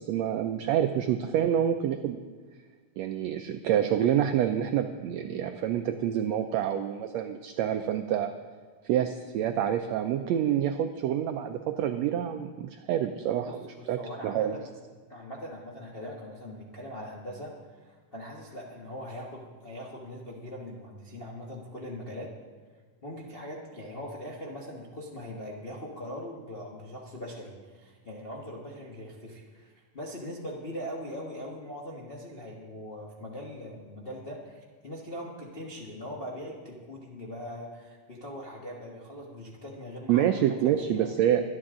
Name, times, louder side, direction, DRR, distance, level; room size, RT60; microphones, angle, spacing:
voice 1, 0.0-2.2 3.0-8.3 8.8-13.6 13.9-14.6 40.1-41.4, right 10 dB, 85° right, 6 dB, 1.5 m, -27 dB
voice 2, 13.5-14.7 15.1-22.3 23.0-40.3 40.6-41.1, equal, 90° left, -4 dB, 0.5 m, -41 dB
24.5 x 8.8 x 3.8 m, 1.5 s
omnidirectional pair, 3.6 m